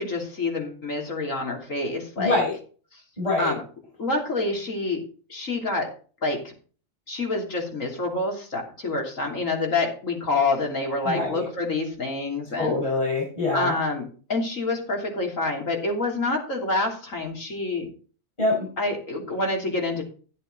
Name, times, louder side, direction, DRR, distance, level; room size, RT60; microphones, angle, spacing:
voice 1, 0.0-2.4 3.4-3.6 4.0-5.9 6.2-6.5 7.1-12.8 13.5-17.9 18.8-20.0, left 2 dB, 75° left, 1 dB, 3.6 m, -27 dB
voice 2, 2.2-2.5 3.2-3.5 11.0-11.5 12.6-13.7 18.4-18.7, left 2 dB, 25° left, -3 dB, 5.1 m, -24 dB
14.0 x 8.3 x 4.0 m, 0.39 s
omnidirectional pair, 1.4 m